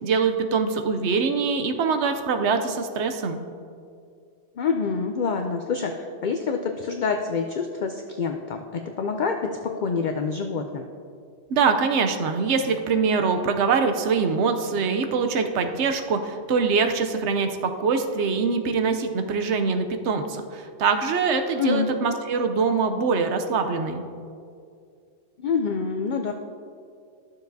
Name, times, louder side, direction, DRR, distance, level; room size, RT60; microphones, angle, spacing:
voice 1, 0.0-3.4 11.5-24.0, right 5 dB, 70° right, 7 dB, 0.9 m, -23 dB
voice 2, 4.6-10.8 21.6-21.9 25.4-26.3, left 5 dB, 60° left, 4 dB, 0.5 m, -27 dB
12.5 x 6.9 x 2.6 m, 2.3 s
omnidirectional pair, 1.3 m